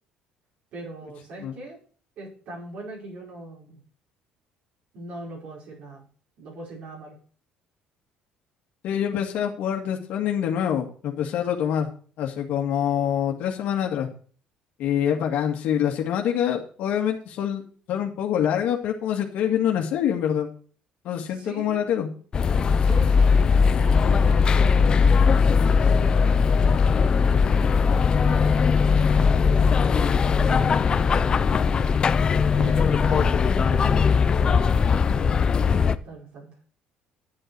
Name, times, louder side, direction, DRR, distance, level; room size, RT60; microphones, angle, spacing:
voice 1, 0.7-1.8 2.2-3.8 4.9-6.0 6.4-7.2 21.3-21.9 22.8-25.2 25.6-31.2 32.3-36.5, right 2 dB, 60° right, -3 dB, 4.8 m, -40 dB
voice 2, 8.8-11.9 12.2-14.1 14.8-17.6 17.9-20.5 21.0-22.1, left 9 dB, 65° left, 2 dB, 2.0 m, -25 dB
sound 1, 22.3-35.9, left 5 dB, 30° left, 0.6 m, -19 dB
10.5 x 8.0 x 4.6 m, 0.43 s
cardioid pair, 130°, 3 cm